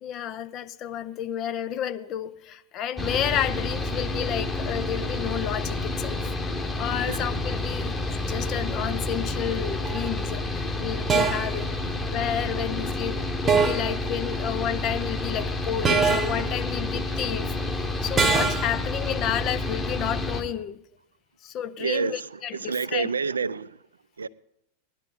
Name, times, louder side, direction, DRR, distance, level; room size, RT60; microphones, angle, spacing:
voice 1, 0.0-6.3 6.8-11.8 12.1-13.2 13.4-17.5 18.0-20.8 21.4-23.1, left 10 dB, 35° left, 0.6 m, -31 dB
Mechanical fan, 3.0-20.4, left 2 dB, 15° left, 1.3 m, -29 dB
sound 1, 9.8-10.1 11.1-11.6 13.5-14.0 15.8-16.5 18.2-18.8, right 5 dB, 20° right, 1.0 m, -23 dB
voice 2, 21.8-23.8 24.2-24.3, right 5 dB, 75° right, 0.4 m, -28 dB
18.0 x 11.5 x 3.8 m
figure-of-eight pair, 90°, 0 cm